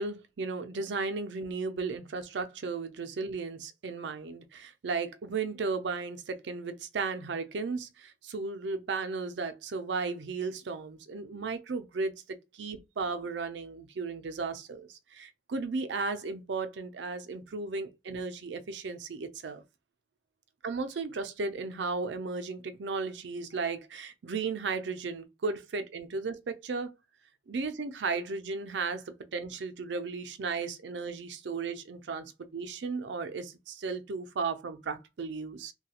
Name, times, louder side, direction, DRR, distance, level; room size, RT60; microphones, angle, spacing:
voice 1, 0.0-12.1 12.5-19.6 20.6-26.9 27.5-35.7, right 4 dB, 85° right, 0.5 m, -35 dB
3.1 x 2.3 x 2.8 m
head